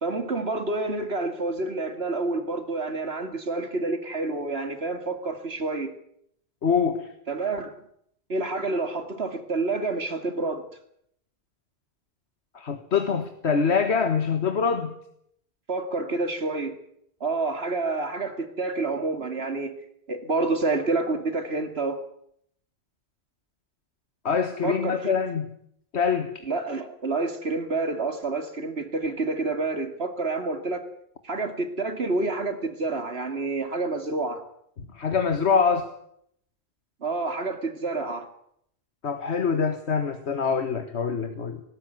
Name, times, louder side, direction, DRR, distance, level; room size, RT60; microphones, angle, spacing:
voice 1, 0.0-5.9 7.3-7.7 8.3-10.6 15.7-16.8 17.2-19.8 20.1-22.0 24.6-25.1 26.4-30.8 31.2-34.4 37.0-38.3, right 3 dB, 70° right, 7 dB, 2.7 m, -28 dB
voice 2, 6.6-7.1 12.5-14.9 24.3-25.5 25.9-26.3 34.9-35.9 39.0-41.6, left 6 dB, 85° left, 7 dB, 1.8 m, -24 dB
18.5 x 18.5 x 9.3 m, 0.70 s
omnidirectional pair, 1.1 m